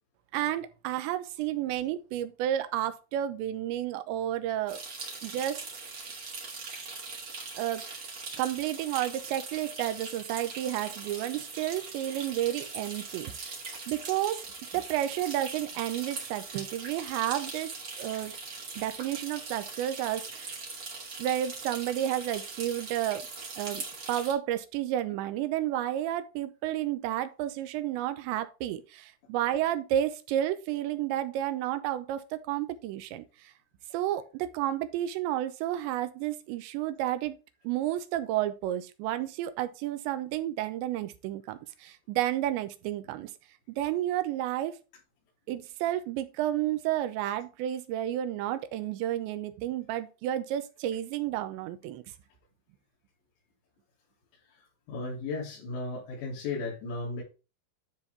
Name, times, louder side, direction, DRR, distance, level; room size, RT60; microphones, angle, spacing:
voice 1, 0.3-4.8 5.2-5.7 7.6-7.8 8.4-13.5 13.9-14.4 14.7-17.7 18.0-18.3 18.8-20.5 21.2-23.3 23.6-33.5 33.9-37.4 37.6-43.3 43.7-44.8 45.5-52.0, right 12 dB, 85° right, 2.9 m, -31 dB
sound 1, 4.7-24.3, right 4 dB, 40° right, 2.4 m, -41 dB
voice 2, 54.9-57.2, left 3 dB, 75° left, 5.4 m, -35 dB
12.5 x 4.1 x 3.5 m
omnidirectional pair, 5.3 m